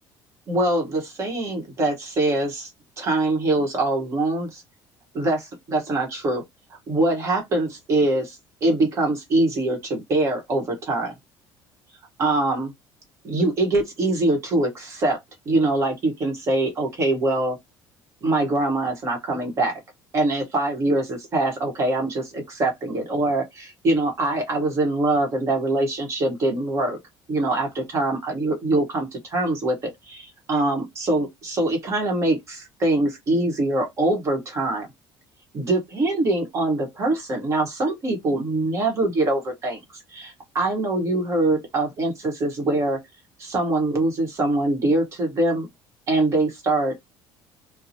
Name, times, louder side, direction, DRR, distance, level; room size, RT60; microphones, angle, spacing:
voice 1, 0.5-2.7 3.0-4.6 5.1-6.4 6.9-11.1 12.2-12.7 13.2-15.2 15.4-17.6 18.2-19.8 20.1-27.0 27.3-34.9 35.5-39.8 40.1-43.0 43.4-45.7 46.1-47.0, right 2 dB, 35° right, 1.0 m, -23 dB
2.7 x 2.0 x 2.6 m
cardioid pair, 155°, 8 cm